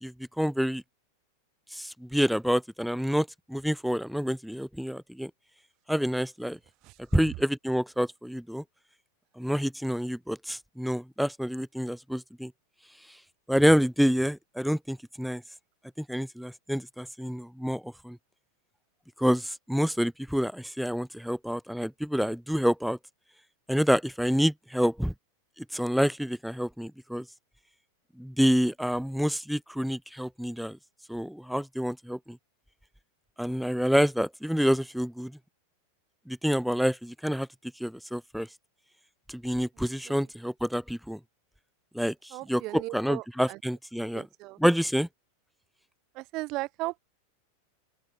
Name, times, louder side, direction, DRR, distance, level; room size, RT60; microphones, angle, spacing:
voice 1, 0.0-0.8 1.7-5.3 5.9-6.6 7.1-8.6 9.4-12.5 13.1-13.2 13.5-15.4 16.0-18.2 19.2-23.0 23.7-25.1 25.6-27.2 28.2-30.8 31.1-32.4 33.4-35.3 36.3-37.5 37.8-38.5 39.3-41.2 41.9-44.3 44.6-45.1, equal, ahead, 1.5 m, -28 dB
voice 2, 42.3-43.6 44.1-44.6 46.2-47.0, right 21 dB, 40° right, 2.4 m, -36 dB
open air
figure-of-eight pair, 90°, 0 cm